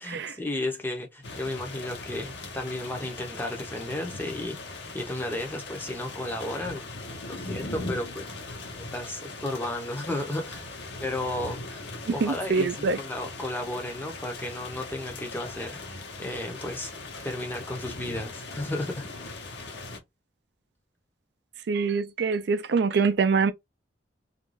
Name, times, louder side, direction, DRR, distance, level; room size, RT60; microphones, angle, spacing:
voice 1, 0.0-6.8 7.3-8.3 8.8-10.6 11.0-11.8 12.1-16.9 17.2-19.4, left 1 dB, 10° left, 0.6 m, -34 dB
sound 1, 1.2-20.0, left 2 dB, 70° left, 0.9 m, -39 dB
voice 2, 12.2-13.0 21.7-23.5, right 5 dB, 70° right, 0.4 m, -24 dB
2.5 x 2.2 x 3.1 m
head